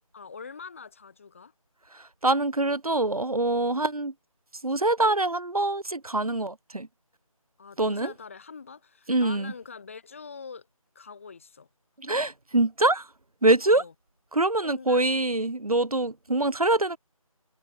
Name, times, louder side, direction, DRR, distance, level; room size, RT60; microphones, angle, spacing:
voice 1, 0.1-1.5 7.6-10.7 10.9-11.7 13.6-13.9 14.6-15.1, left 5 dB, 20° left, 7.9 m, -44 dB
voice 2, 1.9-4.1 4.6-6.9 7.8-8.1 9.1-9.5 12.0-13.1 13.4-13.8 14.3-17.0, right 2 dB, 80° right, 6.1 m, -24 dB
figure-of-eight pair, 175°, 18 cm